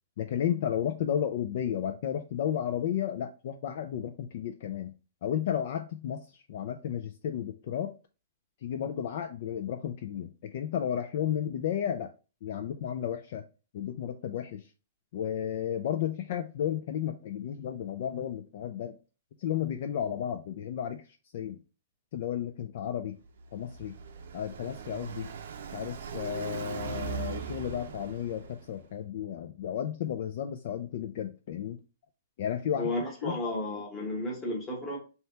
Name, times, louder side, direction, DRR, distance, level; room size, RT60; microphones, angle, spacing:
voice 1, 0.2-4.9 5.2-7.9 8.6-12.1 12.4-13.4 13.7-14.7 15.1-18.9 19.4-21.0 21.3-21.6 22.1-23.2 23.5-23.9 24.3-25.3 25.7-31.8 32.4-32.9 33.2-33.4, left 9 dB, 40° left, 0.3 m, -33 dB
Car passing by, 23.3-28.8, right 7 dB, 60° right, 0.6 m, -40 dB
voice 2, 32.8-35.0, left 1 dB, 10° left, 1.0 m, -33 dB
3.3 x 2.8 x 4.3 m
hypercardioid pair, 180°, 0 cm